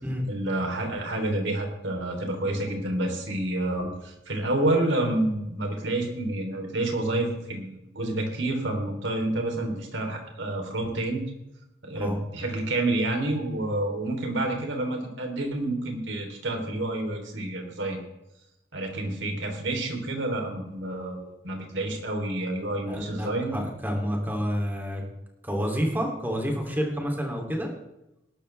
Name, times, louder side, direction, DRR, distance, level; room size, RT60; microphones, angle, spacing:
voice 1, 0.3-11.2 11.8-18.0 18.7-23.6, right 1 dB, 90° right, 2 dB, 3.3 m, -29 dB
voice 2, 22.7-25.0 25.4-27.7, equal, 10° right, 0 dB, 2.8 m, -29 dB
19.5 x 12.0 x 3.4 m, 0.91 s
head